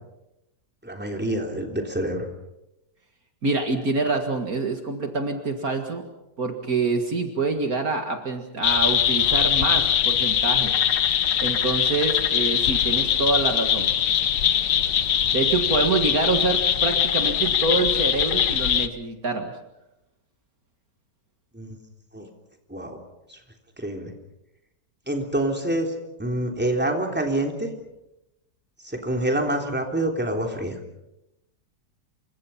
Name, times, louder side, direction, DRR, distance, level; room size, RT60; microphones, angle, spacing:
voice 1, 0.8-2.3 21.5-21.8 22.1-22.3 22.7-23.0 23.3-23.4 23.8-24.1 25.1-25.9 26.2-27.7 28.8-30.7, right 1 dB, 5° right, 2 dB, 3.4 m, -26 dB
voice 2, 3.4-6.0 6.4-10.7 11.4-13.9 15.3-19.5, right 3 dB, 55° right, 5 dB, 2.3 m, -26 dB
sound 1, 8.6-18.9, left 9 dB, 80° left, 1.7 m, -22 dB
28.5 x 25.0 x 5.8 m, 0.89 s
omnidirectional pair, 1.9 m